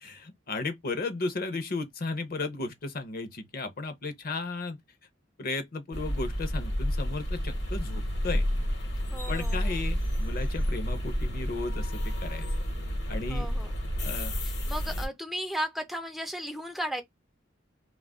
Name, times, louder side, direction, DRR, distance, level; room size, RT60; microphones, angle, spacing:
voice 1, 0.0-4.8 5.4-8.5 9.3-12.5 13.1-13.5 14.0-14.4, left 3 dB, 50° left, 0.7 m, -35 dB
sound 1, 5.9-15.1, equal, 70° left, 1.1 m, -30 dB
voice 2, 9.1-9.8 13.3-13.7 14.4-17.0, equal, ahead, 0.4 m, -35 dB
2.3 x 2.1 x 3.4 m
head